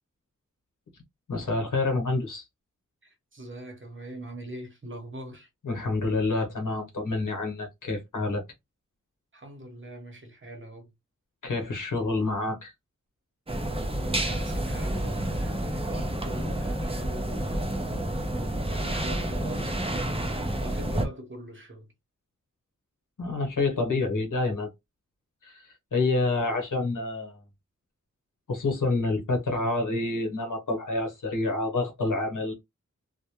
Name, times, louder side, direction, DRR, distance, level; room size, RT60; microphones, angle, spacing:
voice 1, 1.3-2.4 5.6-8.4 11.4-12.7 23.2-24.7 25.4-25.6 25.9-27.4 28.5-32.5, left 2 dB, 80° left, 1.0 m, -28 dB
voice 2, 3.0-5.5 9.3-10.9 13.9-18.0 18.7-20.2 20.6-21.9, right 1 dB, 40° right, 0.9 m, -43 dB
sound 1, 13.5-21.1, right 1 dB, 20° right, 0.6 m, -29 dB
2.1 x 2.1 x 2.9 m
wide cardioid pair, 50°, 31 cm